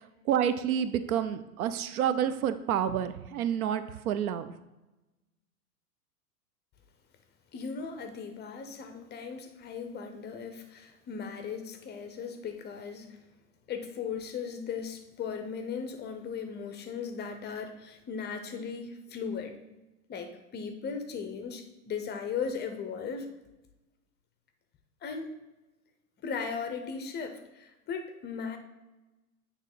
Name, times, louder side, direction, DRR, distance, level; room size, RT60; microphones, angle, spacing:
voice 1, 0.3-4.5, right 9 dB, 70° right, 12 dB, 0.6 m, -29 dB
voice 2, 7.5-13.2 13.7-19.6 20.1-23.3 25.0-25.3 26.2-28.6, left 6 dB, 20° left, 6 dB, 0.6 m, -37 dB
8.9 x 3.1 x 3.8 m, 1.0 s
hypercardioid pair, 105°, 46 cm